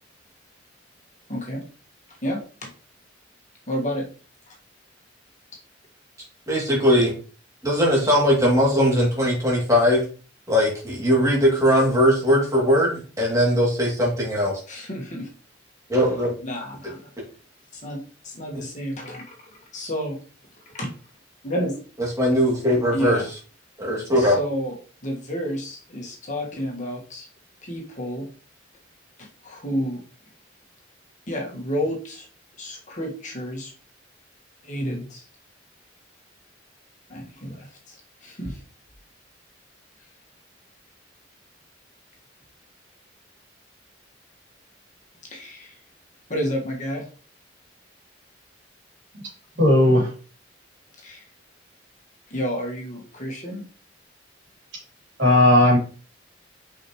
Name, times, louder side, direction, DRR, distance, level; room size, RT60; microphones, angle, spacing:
voice 1, 1.3-1.6 2.2-2.7 3.7-4.0 14.7-15.3 16.4-17.1 17.7-19.2 19.7-20.2 20.6-20.9 21.4-21.8 22.9-23.3 24.2-24.8 25.0-27.3 27.6-28.3 29.2-30.0 31.3-32.3 32.6-33.7 34.6-35.2 37.1-38.6 45.3-45.7 46.3-47.1 51.0-51.2 52.3-53.6, equal, 40° left, -1 dB, 1.7 m, -30 dB
voice 2, 6.5-7.1 7.6-10.0 10.5-14.5 15.9-16.3 22.0-23.4 23.8-24.4, equal, 15° right, -4 dB, 2.6 m, -20 dB
voice 3, 49.6-50.1 55.2-55.8, left 1 dB, 65° right, -3 dB, 3.1 m, -15 dB
6.3 x 5.1 x 3.1 m, 0.38 s
head